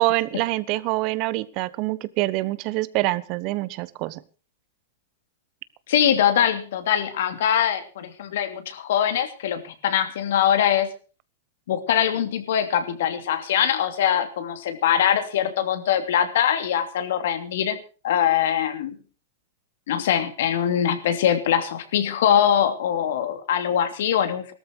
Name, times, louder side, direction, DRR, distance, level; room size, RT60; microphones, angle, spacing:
voice 1, 0.0-4.2, right 18 dB, 50° right, 17 dB, 1.2 m, -25 dB
voice 2, 5.9-10.9 11.7-17.8 18.0-18.9 19.9-24.5, left 9 dB, 70° left, 8 dB, 2.9 m, -22 dB
18.0 x 13.5 x 4.7 m, 0.36 s
hypercardioid pair, 110°, 0 cm